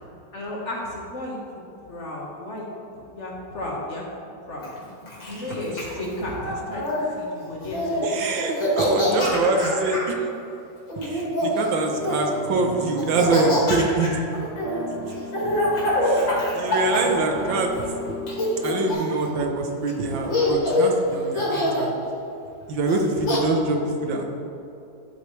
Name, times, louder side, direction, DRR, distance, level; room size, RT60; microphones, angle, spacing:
voice 1, 0.3-1.4 1.8-2.8 3.0-4.1 4.5-4.7 5.3-6.9 7.2-8.3 8.8-9.7 15.4-15.9 16.3-16.8, left 1 dB, 40° left, -4 dB, 1.8 m, -34 dB
Laughter, 4.6-7.0 7.6-8.0 8.4-10.1 10.9-12.4 13.0-17.8 18.3-19.2 19.9-20.0 20.3-20.9 21.3-21.9 22.9-23.4, left 1 dB, 90° left, 2.9 m, -25 dB
voice 2, 8.0-10.0 11.0-14.2 16.0-16.3 16.5-17.7 18.1-18.2 18.6-22.0 22.7-24.2, right 3 dB, 85° right, 3 dB, 1.7 m, -24 dB
sound 1, 11.9-18.9, equal, 45° right, 0.5 m, -36 dB
11.5 x 8.1 x 3.3 m, 2.7 s
omnidirectional pair, 2.0 m